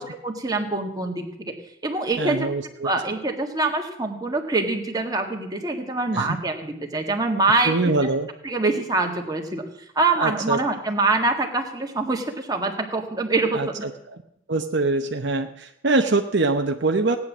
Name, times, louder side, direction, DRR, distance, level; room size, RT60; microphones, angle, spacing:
voice 1, 0.0-1.5 1.8-2.5 2.8-7.8 8.4-9.6 10.0-13.9, right 3 dB, 20° right, 3 dB, 1.8 m, -24 dB
voice 2, 2.2-2.9 6.1-6.4 7.6-8.3 10.2-10.6 13.5-14.2 14.5-17.2, right 3 dB, 55° right, 5 dB, 0.9 m, -23 dB
17.0 x 9.7 x 7.3 m, 0.79 s
head